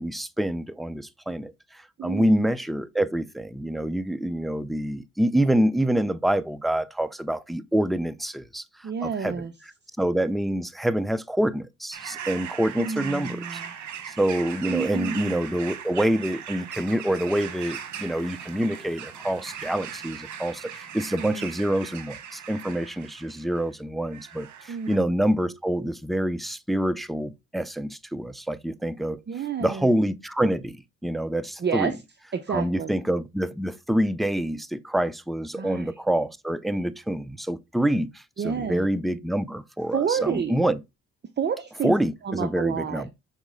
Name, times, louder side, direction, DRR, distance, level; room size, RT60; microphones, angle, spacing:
voice 1, 0.0-9.4 10.0-13.6 14.1-29.2 29.6-31.9 32.5-40.8 41.8-43.1, right 1 dB, ahead, 0.4 m, -26 dB
voice 2, 2.0-2.5 8.8-9.5 12.8-13.7 14.7-15.4 21.2-21.5 24.7-25.1 29.3-29.9 31.6-31.9 32.3-32.9 35.6-35.9 38.4-38.9 39.9-40.6 41.4-42.0 42.2-43.1, right 7 dB, 35° right, 0.7 m, -29 dB
sound 1, 11.9-23.7 24.1-25.0, right 8 dB, 75° right, 1.1 m, -39 dB
6.4 x 4.0 x 3.6 m
cardioid pair, 90°, 30 cm